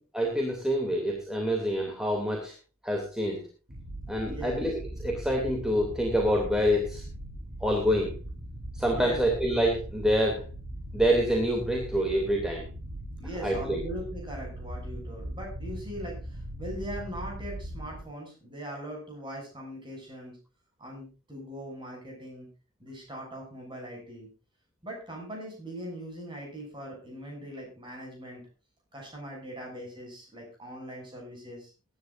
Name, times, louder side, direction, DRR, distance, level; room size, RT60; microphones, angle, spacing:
voice 1, 0.1-2.5 2.8-3.4 4.1-7.0 7.6-8.1 8.7-10.5 10.9-12.6 13.4-13.8, equal, 5° right, 0 dB, 2.6 m, -26 dB
sound 1, 3.7-18.0, right 1 dB, 45° right, 4.1 m, -40 dB
voice 2, 4.3-4.6 8.9-9.2 13.2-20.4 20.8-22.5 22.8-24.3 24.8-28.4 28.9-31.7, right 1 dB, 20° right, 0 dB, 7.0 m, -40 dB
23.0 x 11.0 x 2.6 m, 0.34 s
head